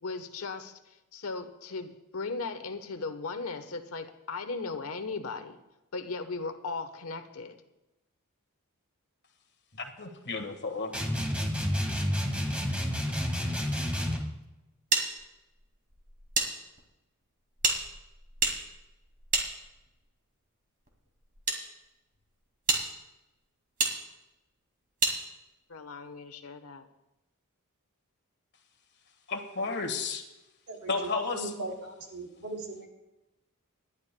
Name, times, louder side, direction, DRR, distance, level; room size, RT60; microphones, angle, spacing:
voice 1, 0.0-5.6 5.9-7.6 25.7-26.9, left 4 dB, 70° left, 8 dB, 1.1 m, -37 dB
voice 2, 9.8-11.2 29.3-30.2 30.9-31.5, left 4 dB, 50° left, 6 dB, 1.5 m, -33 dB
sound 1, 10.9-14.3, equal, 5° right, 1.7 m, -30 dB
sound 2, 14.9-16.5 16.8-16.9 17.6-20.1 20.9-21.6 22.2-22.3 22.7-22.8 23.8-23.9 25.0-25.2, right 3 dB, 40° right, 2.2 m, -29 dB
voice 3, 31.3-32.9, right 2 dB, 70° right, 0 dB, 3.1 m, -39 dB
27.5 x 11.5 x 2.2 m, 0.97 s
head